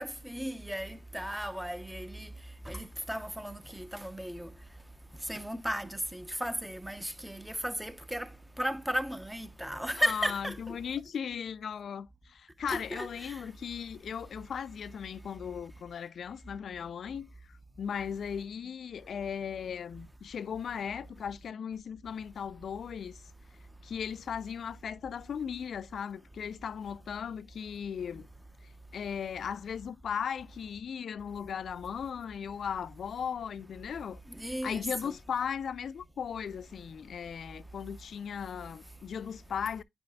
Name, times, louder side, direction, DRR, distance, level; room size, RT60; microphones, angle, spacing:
voice 1, 0.0-2.3 2.7-4.5 5.3-8.3 8.6-10.7 12.7-13.3 34.4-35.1, equal, 5° right, 0.8 m, -35 dB
voice 2, 10.0-17.3 17.8-23.2 23.8-28.3 28.9-34.2 34.6-39.8, left 7 dB, 70° left, 0.4 m, -37 dB
9.1 x 5.2 x 2.3 m
cardioid pair, 65°, 0 cm